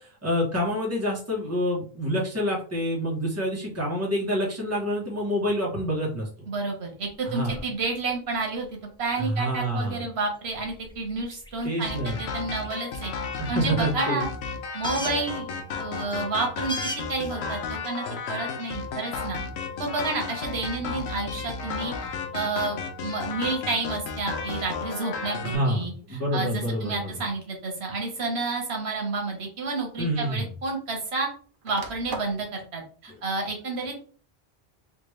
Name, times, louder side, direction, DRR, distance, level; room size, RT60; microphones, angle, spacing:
voice 1, 0.0-6.3 7.2-7.6 9.2-10.0 11.6-12.2 13.4-14.2 25.4-27.2 30.0-30.5 33.1-33.2, equal, 15° right, -3 dB, 1.1 m, -27 dB
voice 2, 6.5-8.7 9.0-13.1 13.5-14.3 14.7-15.5 15.8-16.7 17.1-19.4 19.8-21.9 22.3-25.9 26.3-31.3 31.6-34.0, right 3 dB, 80° right, 1 dB, 1.3 m, -30 dB
sound 1, 7.0-14.4 14.6-17.7, left 1 dB, 5° left, 0.5 m, -42 dB
sound 2, 11.8-25.6, left 5 dB, 80° left, 0.9 m, -33 dB
sound 3, 26.8-27.1 28.1-28.2 29.7-29.8 30.0-31.1 31.4-32.5, right 4 dB, 60° right, 0.6 m, -40 dB
3.4 x 2.5 x 3.2 m, 0.42 s
omnidirectional pair, 1.1 m